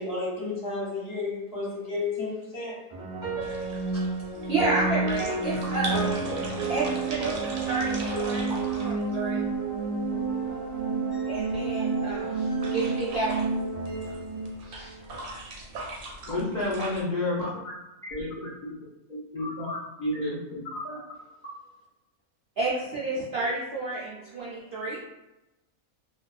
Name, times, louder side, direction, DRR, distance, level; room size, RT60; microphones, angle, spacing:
voice 1, 0.0-2.8, left 3 dB, 50° left, -6 dB, 0.9 m, -32 dB
sound 1, 2.9-15.2, right 3 dB, 5° right, 0.7 m, -30 dB
sound 2, 3.4-17.0, right 2 dB, 85° right, 1.1 m, -41 dB
voice 2, 4.5-6.2 6.7-9.4 11.3-13.5 14.6-15.0 15.2-15.3 22.6-25.0, right 2 dB, 70° right, -7 dB, 0.5 m, -31 dB
voice 3, 16.2-17.5 18.1-18.5 19.1-20.4 20.7-21.0, left 2 dB, 65° left, -8 dB, 0.4 m, -30 dB
2.5 x 2.2 x 2.2 m, 0.97 s
omnidirectional pair, 1.5 m